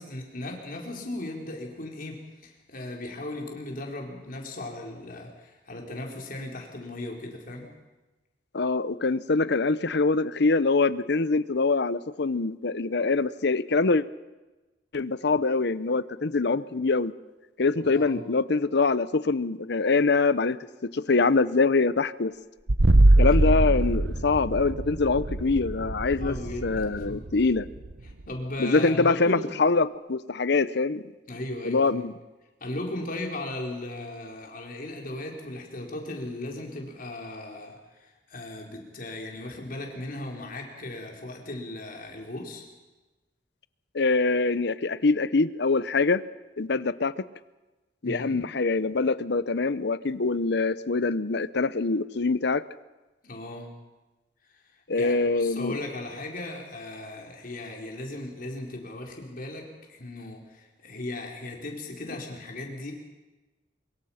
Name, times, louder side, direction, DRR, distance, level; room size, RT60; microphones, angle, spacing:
voice 1, 0.0-7.7 17.8-18.2 23.3-23.5 26.2-27.2 28.0-29.5 31.3-32.1 32.6-42.7 48.0-48.4 53.2-53.7 54.9-62.9, left 1 dB, 50° left, 1 dB, 4.3 m, -37 dB
voice 2, 8.5-14.0 14.9-17.1 17.6-20.6 20.8-22.3 23.2-26.3 26.6-27.7 28.6-31.0 31.6-32.1 43.9-46.2 46.6-47.2 48.0-52.6 54.9-55.8, left 3 dB, 70° left, 16 dB, 0.8 m, -24 dB
sound 1, 22.7-28.3, right 1 dB, 75° right, 1.0 m, -23 dB
24.0 x 22.5 x 5.8 m, 1.1 s
head